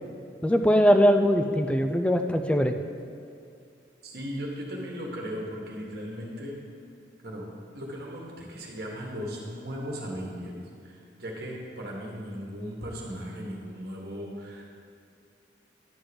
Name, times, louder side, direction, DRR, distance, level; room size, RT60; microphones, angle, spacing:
voice 1, 0.4-2.7, equal, 5° left, 6 dB, 0.3 m, -21 dB
voice 2, 4.0-6.6 7.2-7.5 7.7-10.5 10.8-14.6, equal, 55° right, -2 dB, 1.4 m, -37 dB
10.5 x 3.7 x 6.9 m, 2.5 s
head